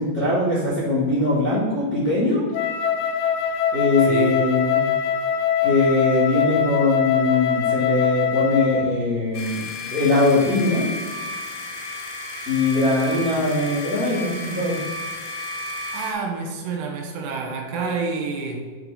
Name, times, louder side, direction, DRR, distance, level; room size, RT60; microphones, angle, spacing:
voice 1, 0.0-2.4 3.7-4.9 5.6-10.8 12.4-14.8, left 2 dB, 35° left, -8 dB, 1.6 m, -21 dB
Wind instrument woodwind instrument, 2.5-9.0, left 8 dB, 90° left, 2.8 m, -23 dB
voice 2, 4.1-4.4 15.9-18.8, right 4 dB, 80° right, 0 dB, 3.0 m, -28 dB
sound 1, 9.3-16.1, left 2 dB, 60° left, 1.9 m, -33 dB
7.7 x 6.0 x 3.5 m, 1.5 s
omnidirectional pair, 5.0 m